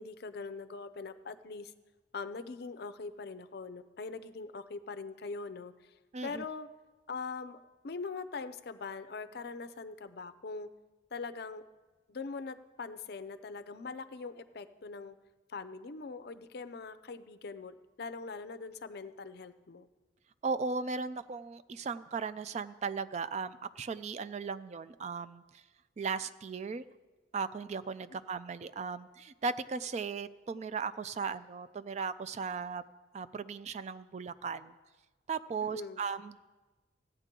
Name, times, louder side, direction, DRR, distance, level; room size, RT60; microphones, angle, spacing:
voice 1, 0.0-1.7 2.1-5.9 6.2-6.7 7.1-7.6 7.8-10.7 11.1-11.6 12.1-15.2 15.5-19.9 35.6-36.0, left 4 dB, 60° left, 11 dB, 0.5 m, -42 dB
voice 2, 6.1-6.4 20.4-25.6 26.0-26.8 27.3-32.8 33.1-34.7 35.3-36.4, right 5 dB, 40° right, 14 dB, 0.3 m, -37 dB
16.0 x 9.0 x 3.7 m, 1.2 s
head